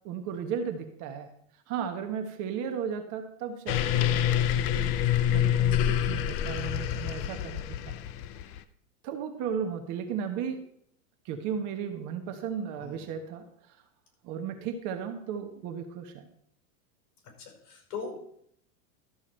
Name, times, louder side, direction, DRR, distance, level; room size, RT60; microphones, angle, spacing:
voice 1, 0.0-1.3 1.7-4.9 5.3-8.0 9.0-10.6 11.2-13.8 14.2-16.2, right 7 dB, 40° right, 6 dB, 1.3 m, -35 dB
sound 1, 3.7-8.6, left 10 dB, 30° left, 0.5 m, -27 dB
voice 2, 17.4-18.2, left 5 dB, 50° left, 2 dB, 5.2 m, -40 dB
13.0 x 7.0 x 4.5 m, 0.70 s
supercardioid pair, 140°, 45 cm